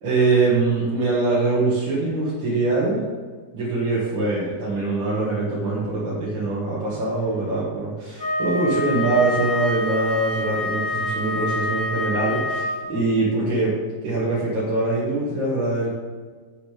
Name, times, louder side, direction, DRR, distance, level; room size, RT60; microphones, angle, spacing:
voice 1, 0.0-3.1 3.5-13.7 14.0-15.9, right 3 dB, 85° right, -7 dB, 2.5 m, -23 dB
Wind instrument woodwind instrument, 8.2-13.1, left 2 dB, 85° left, 3.1 m, -26 dB
7.7 x 6.6 x 5.0 m, 1.4 s
omnidirectional pair, 2.1 m